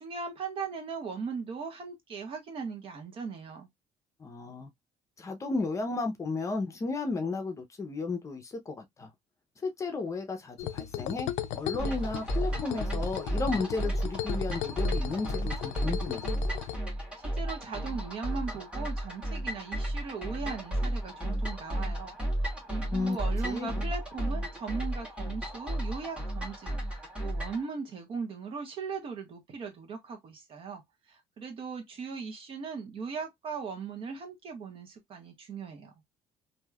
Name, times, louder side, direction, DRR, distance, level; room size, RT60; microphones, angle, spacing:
voice 1, 0.0-3.7 17.2-22.2 22.4-26.8 27.2-30.8 31.1-35.9, right 5 dB, 50° right, 1.2 m, -38 dB
voice 2, 4.2-4.7 5.2-9.1 9.6-16.2 22.9-23.2 23.4-23.8, left 3 dB, 25° left, 0.7 m, -33 dB
sound 1, 10.6-16.8, left 12 dB, 75° left, 0.4 m, -36 dB
sound 2, 11.8-27.6, right 1 dB, 10° right, 1.5 m, -33 dB
3.0 x 2.7 x 2.3 m
cardioid pair, 140°, 12 cm